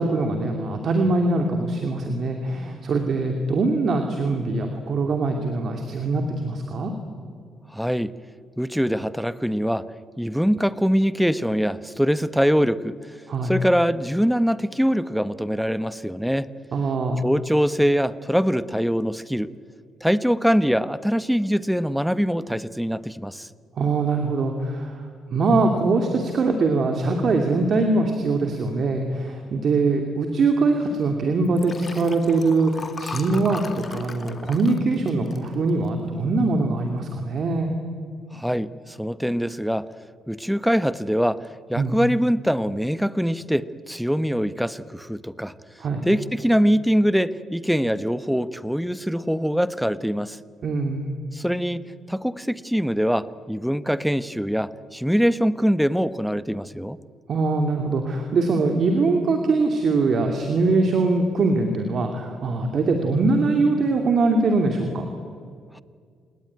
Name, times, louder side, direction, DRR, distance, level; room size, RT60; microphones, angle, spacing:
voice 1, 0.0-6.9 13.3-13.5 16.7-17.2 23.8-37.8 41.8-41.9 45.8-46.1 50.6-51.1 57.3-65.0, right 3 dB, 55° right, 4 dB, 2.7 m, -22 dB
voice 2, 7.7-8.1 8.6-9.9 10.2-13.1 13.4-16.5 17.2-19.5 20.0-23.5 38.3-39.9 40.3-45.5 46.1-50.4 51.3-57.0 65.7-65.8, equal, ahead, 15 dB, 0.9 m, -23 dB
Liquid, 31.4-36.1 36.6-36.8 37.1-37.2, left 4 dB, 35° left, 2.1 m, -38 dB
28.5 x 19.0 x 9.6 m, 2.1 s
cardioid pair, 90°, 0 cm